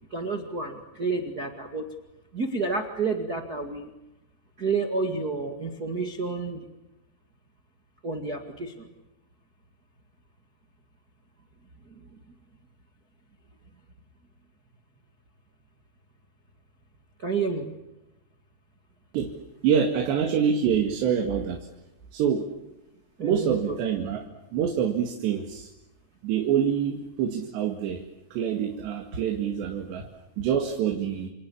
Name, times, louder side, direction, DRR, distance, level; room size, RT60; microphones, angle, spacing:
voice 1, 0.1-1.8 2.3-3.9 4.6-6.6 8.0-8.9 17.2-17.7 23.2-23.8, right 4 dB, 35° right, 5 dB, 1.6 m, -30 dB
voice 2, 19.6-21.7 22.1-22.5 23.2-24.3 24.5-25.7 26.2-28.0 28.3-30.1 30.4-31.3, right 8 dB, 85° right, 4 dB, 4.2 m, -26 dB
29.5 x 28.0 x 7.1 m, 0.93 s
omnidirectional pair, 4.8 m